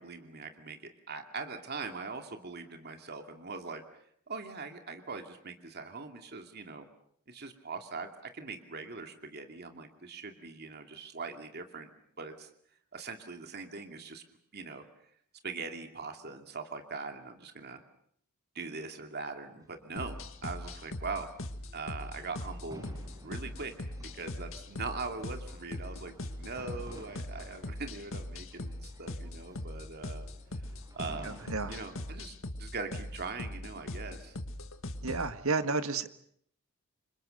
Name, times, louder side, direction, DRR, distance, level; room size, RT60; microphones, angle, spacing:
voice 1, 0.0-3.8 4.3-6.9 7.3-11.9 12.2-12.5 12.9-14.2 14.5-14.8 15.4-17.8 18.5-21.3 21.7-22.9 23.2-26.1 26.4-30.3 30.9-31.3 31.7-34.4, right 4 dB, 45° right, 6 dB, 2.6 m, -41 dB
sound 1, 19.6-32.1, right 1 dB, 15° right, 5.2 m, -55 dB
sound 2, 20.0-35.3, left 1 dB, 60° left, 2.0 m, -41 dB
voice 2, 31.2-31.8 35.0-36.1, right 3 dB, 65° right, 10 dB, 1.7 m, -31 dB
29.0 x 26.0 x 6.6 m, 0.67 s
head